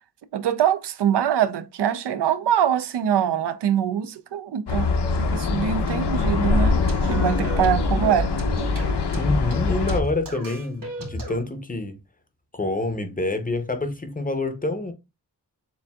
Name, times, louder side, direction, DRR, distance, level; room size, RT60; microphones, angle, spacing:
voice 1, 0.3-5.0 5.3-8.3, right 9 dB, 85° right, 0.5 m, -23 dB
sound 1, 4.7-10.0, left 4 dB, 80° left, 0.7 m, -23 dB
sound 2, 6.1-11.4, equal, 55° right, 1.9 m, -35 dB
voice 2, 9.1-12.0 12.5-14.9, left 2 dB, 20° left, 0.5 m, -27 dB
7.0 x 2.6 x 2.3 m
wide cardioid pair, 150°, 40 cm